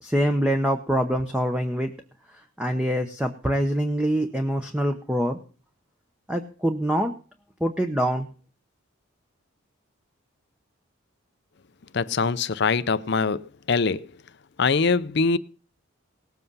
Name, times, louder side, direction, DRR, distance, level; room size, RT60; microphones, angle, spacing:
voice 1, 0.0-1.9 2.6-5.4 6.3-7.1 7.6-8.3, equal, 5° right, 0.8 m, -24 dB
voice 2, 11.9-13.4 13.7-14.0 14.6-15.4, left 4 dB, 50° left, 0.6 m, -22 dB
18.5 x 7.9 x 5.5 m
head